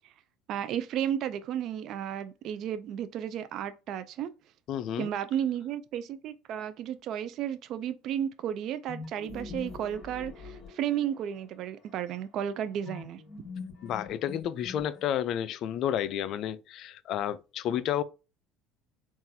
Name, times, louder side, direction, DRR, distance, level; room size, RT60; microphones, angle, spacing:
voice 1, 0.5-4.3 5.0-13.2, right 10 dB, 60° right, 0.3 m, -33 dB
voice 2, 4.7-5.1 13.8-18.0, left 10 dB, 60° left, 0.4 m, -31 dB
sound 1, 8.9-11.4 12.8-15.3, left 4 dB, 35° left, 1.7 m, -43 dB
3.8 x 2.4 x 2.7 m
supercardioid pair, 95°, 0 cm